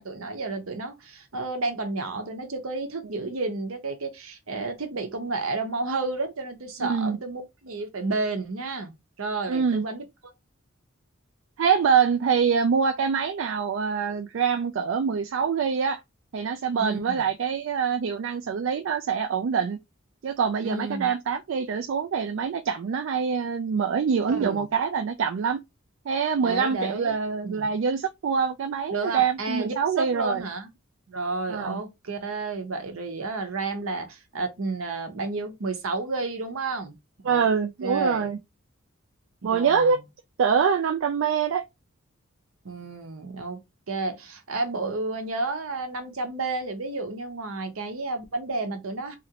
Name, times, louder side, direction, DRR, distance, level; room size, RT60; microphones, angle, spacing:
voice 1, 0.0-8.9 9.2-10.0 16.8-17.3 20.6-21.1 24.3-24.7 26.4-27.1 27.4-27.7 28.9-30.7 31.1-37.0 37.2-37.4 37.8-38.3 39.4-40.0 42.6-43.6 43.9-49.2, right 3 dB, 80° right, 0.8 m, -31 dB
voice 2, 6.8-7.2 9.5-9.8 11.6-16.0 16.3-19.8 20.2-25.6 26.1-30.5 31.5-31.8 37.2-38.4 39.4-40.0 40.4-41.6, right 6 dB, 65° right, 0.3 m, -25 dB
3.0 x 2.5 x 2.8 m
head